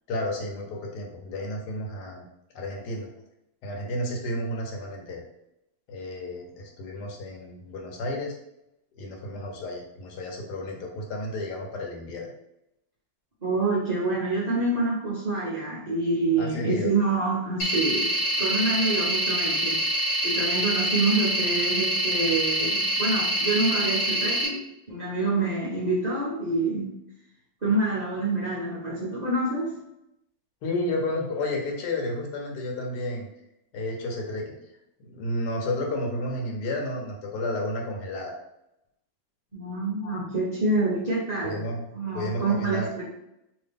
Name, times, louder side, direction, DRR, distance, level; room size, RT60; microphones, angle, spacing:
voice 1, 0.1-2.3 2.5-3.1 3.6-5.2 5.9-8.4 9.0-12.3 16.4-16.9 30.6-33.3 33.7-34.5 35.1-38.3 40.0-40.2 41.4-41.8 42.1-42.9, left 1 dB, 70° left, 1 dB, 1.3 m, -31 dB
voice 2, 13.4-26.9 27.6-29.7 39.5-41.6 41.9-43.0, right 2 dB, 75° right, -8 dB, 0.4 m, -27 dB
sound 1, 17.6-24.5, right 1 dB, 85° left, 1.5 m, -25 dB
2.9 x 2.6 x 3.4 m, 0.83 s
omnidirectional pair, 2.0 m